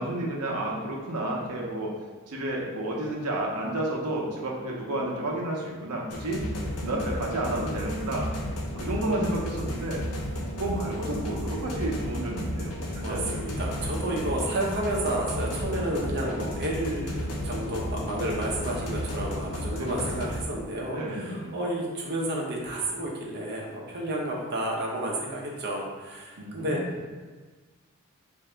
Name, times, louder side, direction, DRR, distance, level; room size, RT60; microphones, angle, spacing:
voice 1, 0.0-1.9 2.3-6.5 6.8-8.3 8.8-10.0 10.6-13.8 19.7-20.4 20.9-21.6 26.4-26.9, right 1 dB, 90° right, -1 dB, 0.7 m, -31 dB
sound 1, 6.1-20.4, left 1 dB, 80° left, 0.7 m, -33 dB
voice 2, 12.9-26.8, right 1 dB, 50° right, -2 dB, 0.7 m, -31 dB
3.8 x 2.6 x 3.3 m, 1.4 s
head